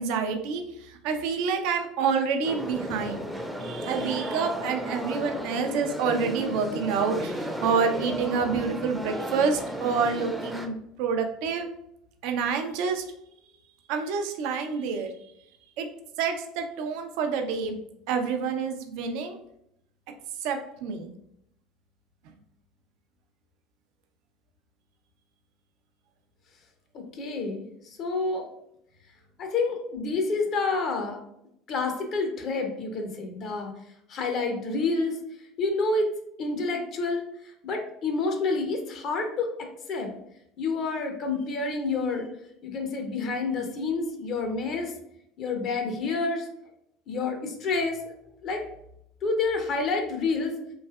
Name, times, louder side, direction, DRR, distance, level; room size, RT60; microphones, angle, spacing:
voice 1, 0.0-3.2 3.6-11.7 12.2-13.0 13.9-15.1 15.8-15.9 16.2-17.8 18.1-19.4 20.4-21.1, right 5 dB, 70° right, 6 dB, 0.4 m, -28 dB
sound 1, 2.4-10.7, equal, ahead, 0.5 m, -34 dB
voice 2, 27.1-27.7 28.0-28.5 29.4-31.2 31.7-33.7 34.1-35.2 35.6-36.1 36.4-39.5 39.9-40.1 40.6-42.3 42.6-44.9 45.4-46.5 47.1-48.1 48.4-48.6 49.2-50.6, left 3 dB, 50° left, 4 dB, 0.6 m, -28 dB
3.1 x 2.6 x 2.3 m, 0.76 s
hypercardioid pair, 80°, 0 cm